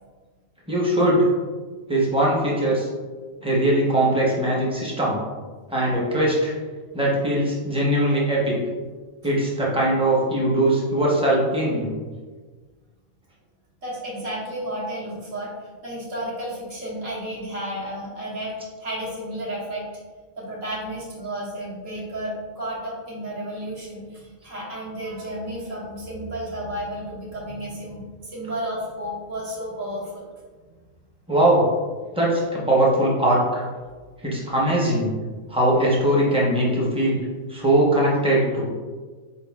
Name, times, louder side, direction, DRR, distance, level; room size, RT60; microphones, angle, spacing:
voice 1, 0.7-1.3 1.9-2.9 3.4-5.2 5.7-6.5 6.9-8.6 9.2-11.9 31.3-31.7 32.1-33.6 34.2-35.1 35.5-37.2 37.5-38.7, right 1 dB, 5° right, -5 dB, 0.6 m, -20 dB
voice 2, 13.8-15.5 15.8-18.5 18.8-19.8 20.4-30.2, right 1 dB, 70° right, -6 dB, 1.5 m, -32 dB
4.6 x 3.9 x 2.3 m, 1.4 s
omnidirectional pair, 1.4 m